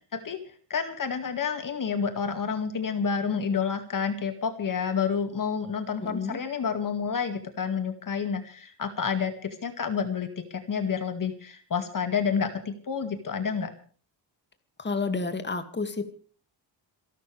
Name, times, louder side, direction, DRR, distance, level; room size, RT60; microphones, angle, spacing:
voice 1, 0.1-0.4 0.7-13.7, left 6 dB, 45° left, 8 dB, 2.1 m, -29 dB
voice 2, 6.0-6.4 14.8-16.1, left 4 dB, 25° left, 8 dB, 2.3 m, -30 dB
27.5 x 12.5 x 3.4 m, 0.43 s
cardioid pair, 125°, 46 cm